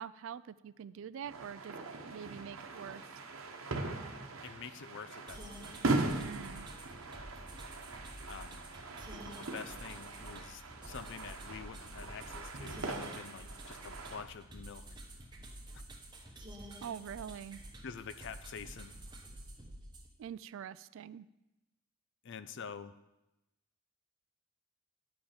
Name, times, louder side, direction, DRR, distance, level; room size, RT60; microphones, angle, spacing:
voice 1, 0.0-3.1 6.1-6.7 16.8-17.6 20.2-21.3, right 8 dB, 65° right, 17 dB, 0.3 m, -45 dB
sound 1, 1.2-14.2, right 2 dB, 85° right, 1.0 m, -40 dB
voice 2, 4.4-5.7 8.2-8.7 9.4-14.9 15.7-15.8 17.8-18.9 22.2-22.9, left 6 dB, 60° left, 12 dB, 0.5 m, -47 dB
sound 2, 5.3-20.1, right 1 dB, 20° right, 1.2 m, -49 dB
10.5 x 5.4 x 5.8 m, 0.94 s
head